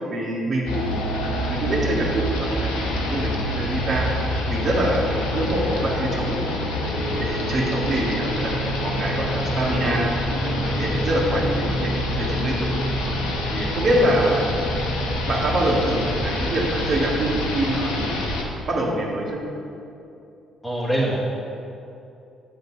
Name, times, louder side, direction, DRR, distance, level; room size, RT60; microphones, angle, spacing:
voice 1, 0.1-1.0 1.5-4.0 4.5-6.4 6.8-10.1 10.4-12.6 13.5-14.5 15.3-18.1 18.7-19.4, right 1 dB, 45° right, -4 dB, 1.7 m, -25 dB
sound 1, 0.7-18.4, left 1 dB, 65° left, 0.9 m, -26 dB
voice 2, 20.6-21.2, right 1 dB, 5° right, -8 dB, 1.7 m, -25 dB
8.0 x 3.9 x 6.2 m, 2.7 s
figure-of-eight pair, 45°, 0 cm